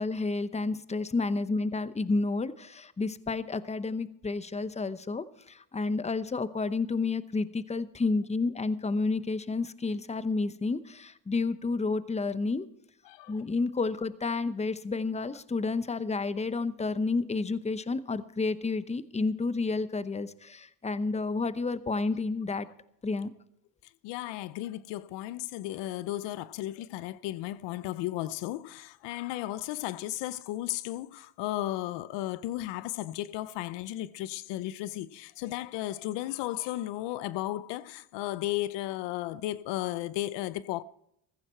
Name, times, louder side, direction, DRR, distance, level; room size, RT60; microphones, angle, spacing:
voice 1, 0.0-12.7 13.3-22.7 23.0-23.3, left 3 dB, 15° left, 0.8 m, -30 dB
voice 2, 13.1-13.4 24.0-40.8, left 15 dB, 90° left, 0.7 m, -34 dB
14.5 x 14.5 x 4.4 m
cardioid pair, 85°, 41 cm